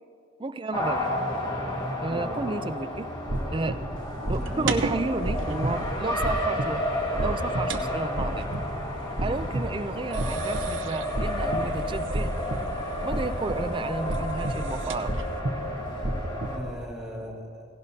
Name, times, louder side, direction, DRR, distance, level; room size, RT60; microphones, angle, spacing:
voice 1, 0.4-1.2 2.0-3.1 3.5-3.8 4.3-6.8 7.1-8.5 9.2-12.3 13.0-15.1, right 3 dB, 25° right, 12 dB, 0.4 m, -32 dB
Race car auto racing, 0.7-16.6, left 1 dB, 20° left, 1.7 m, -32 dB
voice 2, 2.1-2.6 4.4-4.9 16.5-17.7, equal, 5° right, -5 dB, 2.3 m, -38 dB
sound 1, 3.2-16.8, right 1 dB, 55° right, 1.1 m, -33 dB
sound 2, 4.0-15.4, right 3 dB, 70° right, 0.8 m, -38 dB
17.0 x 17.0 x 2.8 m, 2.6 s
head